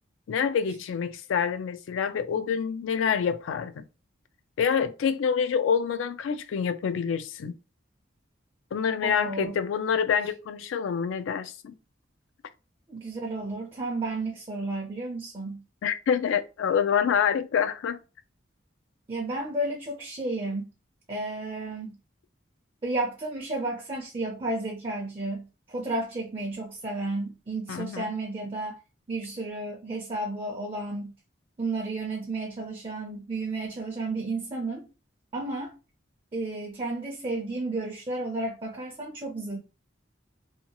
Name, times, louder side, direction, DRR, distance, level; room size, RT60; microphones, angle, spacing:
voice 1, 0.3-3.8 4.6-7.6 8.7-11.7 15.8-18.0 27.7-28.1, left 7 dB, 80° left, 0.3 m, -27 dB
voice 2, 9.0-9.5 12.9-15.6 19.1-20.7 21.1-22.0 22.8-28.8 29.1-31.1 31.6-34.9 35.3-35.8 36.3-39.6, right 2 dB, 30° right, 0.4 m, -32 dB
2.7 x 2.2 x 2.8 m
head